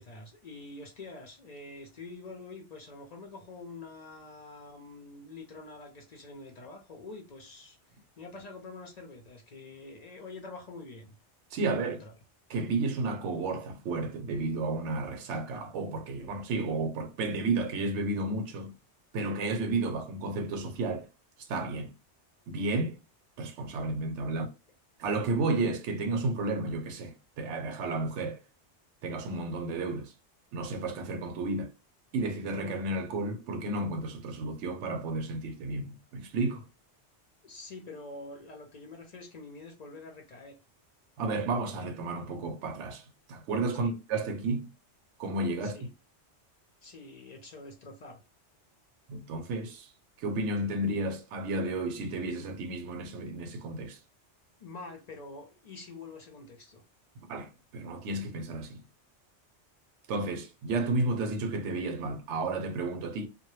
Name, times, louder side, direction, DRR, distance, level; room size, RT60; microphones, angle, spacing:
voice 1, 0.0-7.8 8.2-11.2 11.6-12.1 37.4-40.6 43.8-43.9 45.6-45.9 46.8-48.2 54.6-56.8, left 3 dB, 55° left, 0.5 m, -46 dB
voice 2, 11.5-12.0 12.5-18.7 19.1-21.1 21.5-21.9 22.5-23.0 23.4-24.5 25.0-28.4 29.0-30.1 30.5-31.7 32.1-36.6 41.2-44.7 45.2-45.8 49.1-49.9 50.2-54.0 57.3-58.8 60.1-63.3, right 2 dB, 85° right, 0.9 m, -32 dB
2.1 x 2.1 x 3.0 m
omnidirectional pair, 1.2 m